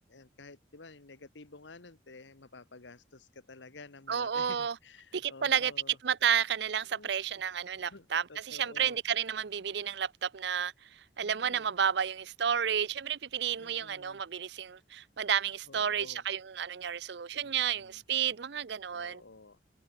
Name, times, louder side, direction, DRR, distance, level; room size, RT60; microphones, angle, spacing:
voice 1, 0.1-6.0 6.9-7.1 7.8-9.0 11.2-11.7 13.6-14.2 15.7-16.2 17.4-18.0 18.9-19.6, left 3 dB, 75° left, 1.4 m, -52 dB
voice 2, 4.1-4.7 5.1-5.7 6.0-10.7 11.2-19.2, right 8 dB, 60° right, 0.5 m, -31 dB
head